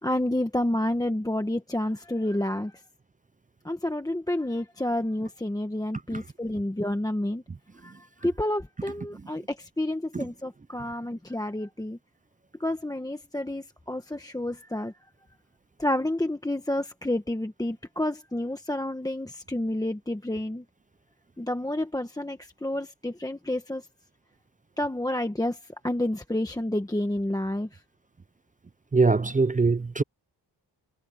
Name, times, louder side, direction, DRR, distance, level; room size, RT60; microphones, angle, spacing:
voice 1, 0.0-2.7 3.6-7.4 7.8-7.9 8.2-12.0 12.6-14.9 15.8-20.6 21.4-23.8 24.8-25.6 25.8-27.7, left 1 dB, 10° left, 1.2 m, -29 dB
voice 2, 28.9-30.0, right 4 dB, 20° right, 0.4 m, -22 dB
wide cardioid pair, 160°, 43 cm